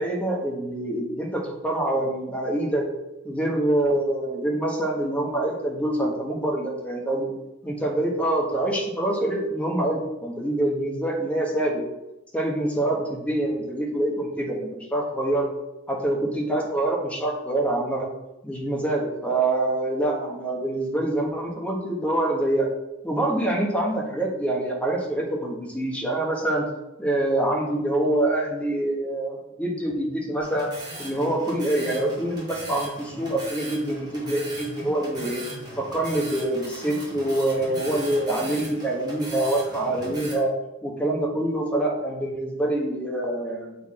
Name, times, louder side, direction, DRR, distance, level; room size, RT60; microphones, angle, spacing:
voice 1, 0.0-2.9 3.2-7.3 7.6-11.8 12.3-15.5 15.9-18.1 18.4-22.7 23.0-26.7 27.0-30.7 31.0-35.4 35.8-40.5 40.8-43.8, right 1 dB, 5° left, -1 dB, 1.2 m, -25 dB
sound 1, 30.4-40.3, right 1 dB, 20° right, 2.0 m, -38 dB
7.0 x 4.2 x 4.2 m, 0.93 s
head